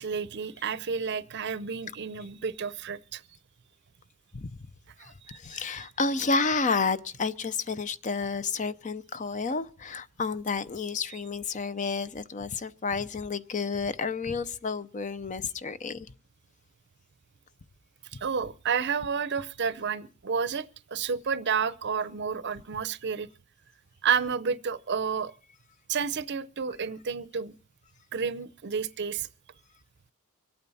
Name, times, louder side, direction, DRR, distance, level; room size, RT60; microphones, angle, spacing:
voice 1, 0.0-3.2 5.0-5.6 18.2-23.3 24.0-25.3 25.9-27.5 28.1-29.3, right 6 dB, 50° right, 0.6 m, -30 dB
voice 2, 5.0-16.1, left 4 dB, 35° left, 0.6 m, -30 dB
25.0 x 8.8 x 4.1 m
head